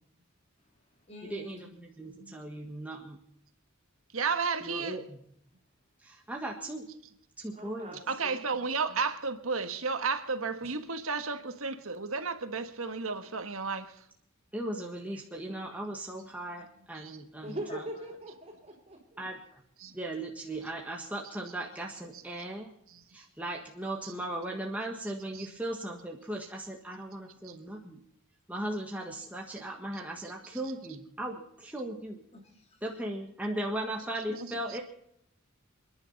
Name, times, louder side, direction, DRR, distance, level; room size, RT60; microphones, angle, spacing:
voice 1, 0.6-1.7 17.7-18.1 32.3-32.8, equal, 30° left, 2.7 m, -48 dB
voice 2, 1.2-3.2 4.6-5.2 6.0-6.9 7.4-8.0 14.5-17.9 19.2-19.6 19.9-22.8 23.1-28.0 28.5-32.2 32.8-34.8, right 1 dB, 5° right, 1.6 m, -38 dB
voice 3, 4.1-5.0 8.1-14.0 16.9-17.2 19.8-20.0 25.3-25.5 27.4-27.6, right 4 dB, 80° right, 1.6 m, -33 dB
voice 4, 7.5-8.4 10.6-10.7 17.4-19.2, right 1 dB, 30° right, 4.6 m, -41 dB
28.0 x 10.5 x 4.1 m
head